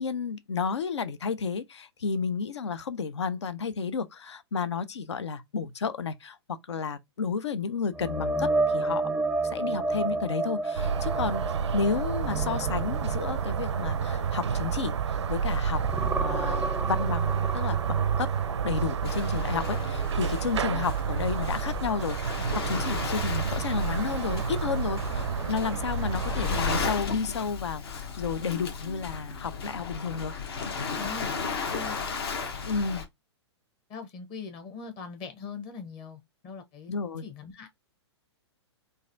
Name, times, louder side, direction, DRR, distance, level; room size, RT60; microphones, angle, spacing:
voice 1, 0.0-6.4 6.7-9.0 9.4-11.4 11.7-14.9 15.3-18.3 18.6-27.8 28.2-30.3 32.7-33.0 36.9-37.2, left 5 dB, 75° left, 0.6 m, -32 dB
sound 1, 7.9-15.4 15.7-19.6 20.0-20.2 23.5-23.6, right 2 dB, 5° right, 0.3 m, -32 dB
sound 2, 10.7-26.9, right 7 dB, 80° right, 0.5 m, -30 dB
Waves surf, 19.0-33.0, left 6 dB, 60° left, 1.1 m, -35 dB
voice 2, 30.9-31.4 31.7-32.0 33.9-36.9 37.2-37.8, left 5 dB, 35° left, 1.2 m, -41 dB
4.0 x 2.6 x 2.6 m
figure-of-eight pair, 115°, 15 cm